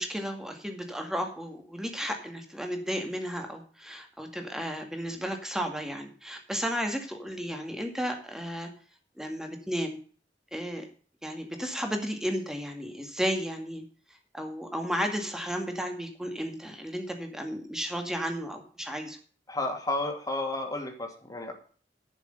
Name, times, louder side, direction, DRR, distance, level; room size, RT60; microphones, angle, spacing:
voice 1, 0.0-8.7 9.2-10.0 10.5-10.9 11.2-13.8 14.3-19.2, equal, 5° right, 4 dB, 2.2 m, -33 dB
voice 2, 19.5-21.5, left 2 dB, 20° left, 1 dB, 2.6 m, -32 dB
11.0 x 6.7 x 6.6 m, 0.42 s
head